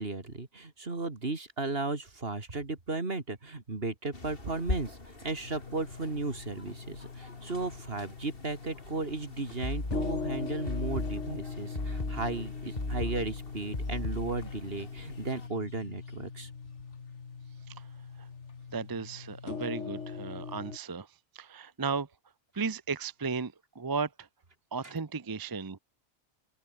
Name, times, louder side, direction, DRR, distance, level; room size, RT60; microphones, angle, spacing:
voice 1, 0.0-5.0 5.2-16.5, right 3 dB, 55° right, 3.0 m, -35 dB
sound 1, 4.1-15.5, left 2 dB, 55° left, 3.4 m, -45 dB
sound 2, 5.4-20.8, left 5 dB, 85° left, 2.1 m, -41 dB
sound 3, 9.6-14.6, left 2 dB, 35° left, 3.1 m, -36 dB
voice 2, 18.7-21.1 21.3-22.1 22.5-24.3 24.7-25.8, right 5 dB, 25° right, 0.5 m, -35 dB
open air
omnidirectional pair, 1.2 m